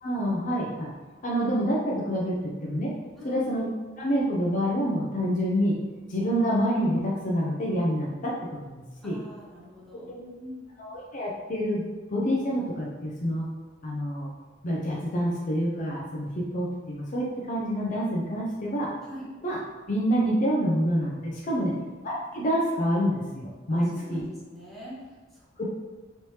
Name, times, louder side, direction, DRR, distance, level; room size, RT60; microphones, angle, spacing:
voice 1, 0.0-0.9 1.2-2.9 3.2-3.7 4.0-5.7 6.1-8.3 8.7-9.2 10.1-10.2 10.8-11.8 12.1-13.5 13.8-14.3 14.6-18.9 19.4-19.6 19.9-21.7 22.0-24.2 25.6-25.7, equal, 40° left, -3 dB, 0.5 m, -27 dB
voice 2, 9.0-10.6 19.0-19.3 21.5-21.8 23.7-25.6, equal, ahead, -7 dB, 0.9 m, -43 dB
3.2 x 3.1 x 2.8 m, 1.3 s
head